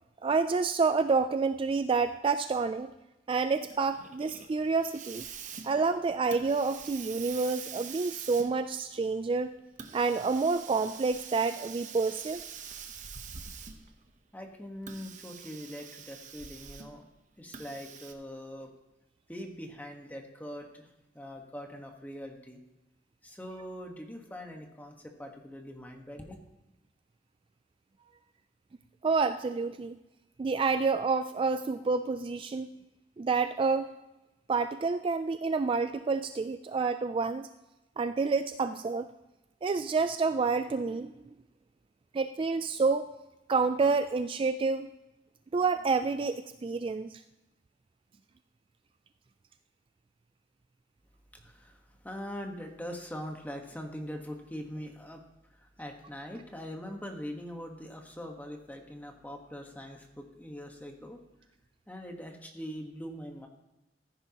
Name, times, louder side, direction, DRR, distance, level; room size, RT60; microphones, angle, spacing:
voice 1, 0.2-2.9 3.3-5.2 5.6-9.5 9.9-12.4 29.0-30.0 30.4-32.7 33.2-33.9 34.5-37.5 38.0-39.1 39.6-41.1 42.1-43.1 43.5-44.9 45.5-47.2, right 4 dB, 30° right, 10 dB, 0.3 m, -28 dB
Hiss, 3.7-14.0 14.8-17.0 17.5-18.1, right 7 dB, 45° right, 0.8 m, -45 dB
voice 2, 14.3-17.0 17.4-18.7 19.3-20.9 21.1-22.6 23.2-26.4 51.4-55.2 55.8-61.2 61.9-63.5, equal, 10° left, 3 dB, 1.3 m, -42 dB
15.0 x 9.9 x 2.9 m, 0.99 s
head